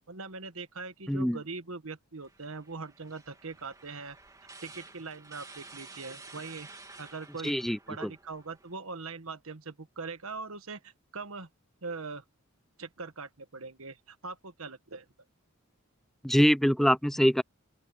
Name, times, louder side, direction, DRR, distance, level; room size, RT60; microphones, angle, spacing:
voice 1, 0.1-4.2 4.6-7.5 7.9-11.5 11.8-12.2 12.8-15.0, right 4 dB, 85° right, 1.5 m, -41 dB
voice 2, 1.1-1.4 7.4-8.1 16.2-17.4, equal, ahead, 0.5 m, -24 dB
sound 1, 2.2-8.7, right 3 dB, 15° right, 2.7 m, -51 dB
open air
head